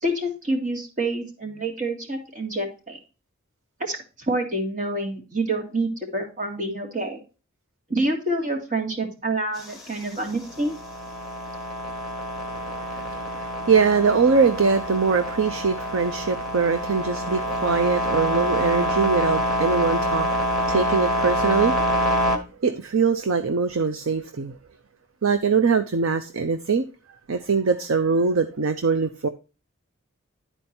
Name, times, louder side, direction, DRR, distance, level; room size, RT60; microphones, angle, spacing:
voice 1, 0.0-3.0 3.8-7.2 7.9-10.7, right 1 dB, 35° right, 2.0 m, -27 dB
sound 1, 9.6-22.4, equal, ahead, 1.4 m, -26 dB
voice 2, 12.5-21.8 22.6-24.6 25.2-26.8 27.3-29.3, right 5 dB, 70° right, 0.6 m, -22 dB
11.0 x 4.5 x 4.3 m
head